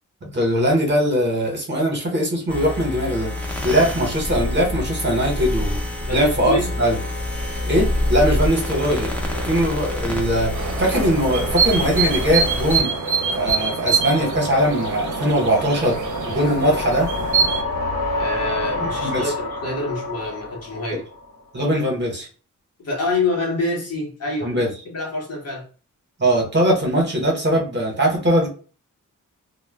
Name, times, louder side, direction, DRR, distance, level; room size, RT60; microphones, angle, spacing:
voice 1, 0.2-3.3 3.6-5.8 6.1-7.0 7.7-9.1 9.4-12.9 13.4-16.0 16.3-17.1 18.8-19.3 21.5-22.3 24.4-24.7 26.2-28.5, equal, 35° right, 0.8 m, -21 dB
sound 1, 2.5-12.8, left 1 dB, 5° left, 0.4 m, -26 dB
voice 2, 6.0-6.7 18.2-21.1 22.8-25.7, left 2 dB, 50° left, 0.8 m, -26 dB
sound 2, 6.7-21.4, left 2 dB, 90° left, 0.9 m, -31 dB
sound 3, 10.5-17.6, right 6 dB, 60° right, 0.5 m, -24 dB
2.1 x 2.0 x 3.3 m
wide cardioid pair, 175°, 32 cm